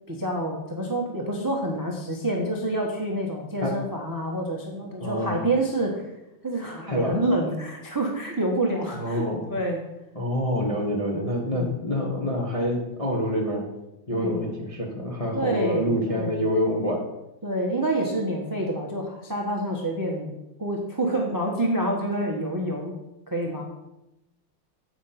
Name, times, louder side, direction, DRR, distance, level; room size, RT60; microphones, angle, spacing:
voice 1, 0.1-6.1 6.4-9.2 9.5-9.8 11.5-11.8 14.1-14.5 15.3-16.3 17.4-20.3 20.6-22.9 23.3-23.6, right 1 dB, 15° right, 0 dB, 0.6 m, -27 dB
voice 2, 5.0-5.4 6.9-7.3 8.9-9.5 10.1-13.6 14.1-17.1, equal, 25° left, -2 dB, 0.8 m, -26 dB
8.0 x 5.1 x 5.7 m, 0.92 s
omnidirectional pair, 2.1 m